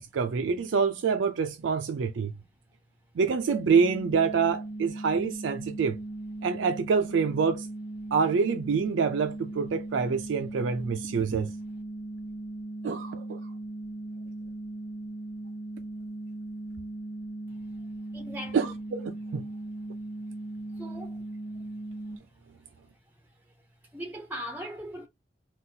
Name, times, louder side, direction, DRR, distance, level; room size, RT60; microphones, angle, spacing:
voice 1, 0.0-2.3 3.2-6.0 6.4-7.7 8.1-11.5 12.8-13.4 18.5-19.4, right 5 dB, 85° right, 0.4 m, -26 dB
sound 1, 3.5-22.2, right 2 dB, 55° left, 0.6 m, -38 dB
voice 2, 18.1-18.7 20.7-21.2 23.9-25.1, equal, 10° right, 0.4 m, -39 dB
3.9 x 2.3 x 2.7 m
head